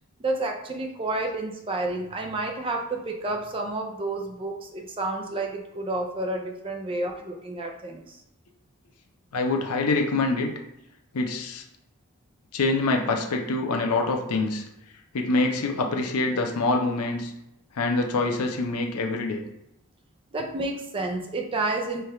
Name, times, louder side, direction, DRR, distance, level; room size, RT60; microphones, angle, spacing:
voice 1, 0.2-8.2 20.3-22.0, right 2 dB, 25° right, 2 dB, 0.4 m, -30 dB
voice 2, 9.3-10.5 11.1-11.6 12.5-14.6 15.1-17.3 17.7-19.4, left 3 dB, 85° left, 3 dB, 0.6 m, -25 dB
3.3 x 2.3 x 4.2 m, 0.85 s
head